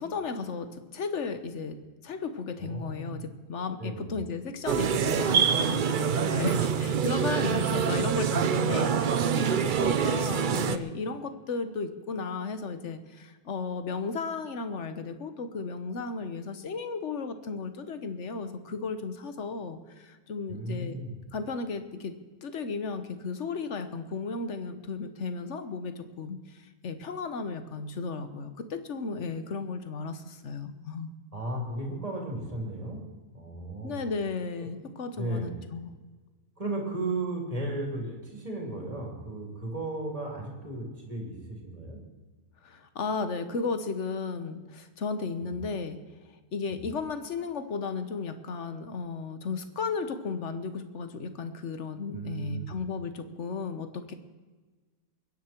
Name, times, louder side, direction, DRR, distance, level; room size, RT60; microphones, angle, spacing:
voice 1, 0.0-21.0 21.3-22.1 22.4-31.1 33.8-35.9 42.6-46.0 46.5-54.1, left 4 dB, 50° left, 10 dB, 1.3 m, -34 dB
voice 2, 2.6-3.2 3.8-4.1 7.5-7.7 20.5-21.2 31.3-33.0 33.3-34.0 34.6-34.7 35.2-35.5 36.6-42.0 45.4-45.6 46.7-46.8 52.1-52.7, right 2 dB, 25° right, -1 dB, 3.4 m, -35 dB
sound 1, 4.7-10.8, right 7 dB, 60° right, 0.5 m, -26 dB
22.5 x 10.5 x 4.5 m, 1.3 s
omnidirectional pair, 1.6 m